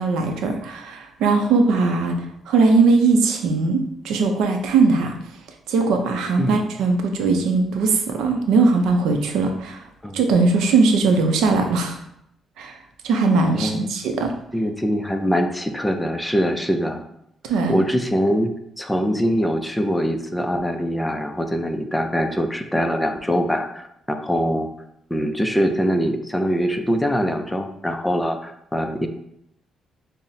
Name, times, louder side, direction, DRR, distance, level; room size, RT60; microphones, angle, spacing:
voice 1, 0.0-2.1 2.5-5.1 5.7-9.8 10.1-12.0 12.6-12.7 13.0-14.3 17.5-17.7, right 4 dB, 85° right, 4 dB, 0.5 m, -19 dB
voice 2, 13.5-13.9 14.5-17.0 17.7-18.5 18.8-24.7 25.1-29.1, equal, 5° left, 6 dB, 0.4 m, -23 dB
5.5 x 2.0 x 2.6 m, 0.77 s
cardioid pair, 90°, 0 cm